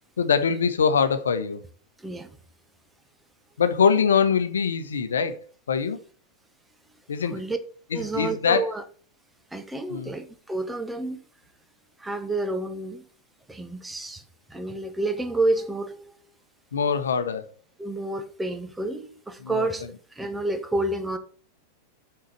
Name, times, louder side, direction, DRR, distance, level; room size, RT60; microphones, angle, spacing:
voice 1, 0.2-1.6 3.6-5.4 5.7-6.0 7.1-7.4 7.9-8.7 9.9-10.1 16.7-17.5 19.4-19.7, left 6 dB, 70° left, 1.0 m, -23 dB
voice 2, 2.0-2.4 7.3-7.6 7.9-8.8 9.5-11.2 12.0-13.0 13.5-14.2 14.5-16.1 17.8-21.2, right 2 dB, 10° right, 1.2 m, -29 dB
6.4 x 5.8 x 6.8 m
figure-of-eight pair, 90°, 0 cm